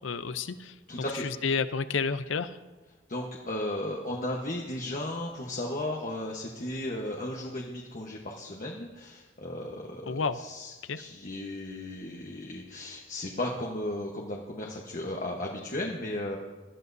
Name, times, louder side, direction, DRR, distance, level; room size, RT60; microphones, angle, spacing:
voice 1, 0.0-0.7 1.2-2.6 10.0-10.4 10.8-11.0, left 5 dB, 85° left, 13 dB, 0.6 m, -30 dB
voice 2, 0.9-1.3 3.1-16.4, left 1 dB, 40° left, 0 dB, 1.1 m, -35 dB
20.5 x 13.5 x 2.7 m, 1.3 s
head